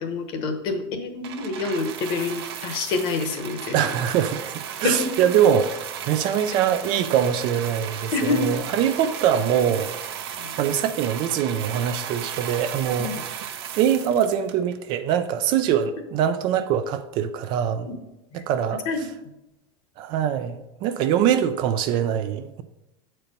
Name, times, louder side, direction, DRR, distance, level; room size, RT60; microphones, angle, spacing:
voice 1, 0.0-4.0 4.8-5.1 8.1-8.5 10.4-10.5 13.0-13.1 17.9-18.0 18.3-18.4 18.9-19.1, left 3 dB, 40° left, 1.0 m, -27 dB
sound 1, 1.2-14.9 15.7-15.8, right 9 dB, 75° right, 0.9 m, -35 dB
voice 2, 3.7-9.9 10.6-13.4 13.8-17.9 18.3-19.1 20.0-22.6, right 9 dB, 35° right, 0.4 m, -23 dB
8.0 x 4.4 x 5.2 m
supercardioid pair, 170°, 13 cm